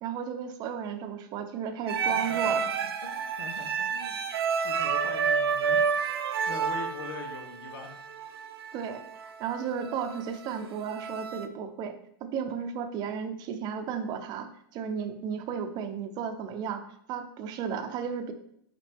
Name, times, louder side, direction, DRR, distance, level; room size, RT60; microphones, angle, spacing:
voice 1, 0.0-2.6 8.7-11.9 12.3-18.3, right 7 dB, 35° right, 8 dB, 0.7 m, -34 dB
sound 1, 1.9-11.5, right 6 dB, 85° right, 0.6 m, -30 dB
voice 2, 2.1-2.7 3.0-6.2 6.5-8.1, left 5 dB, 75° left, 2 dB, 1.1 m, -43 dB
6.2 x 5.0 x 3.5 m, 0.71 s
hypercardioid pair, 140°, 13 cm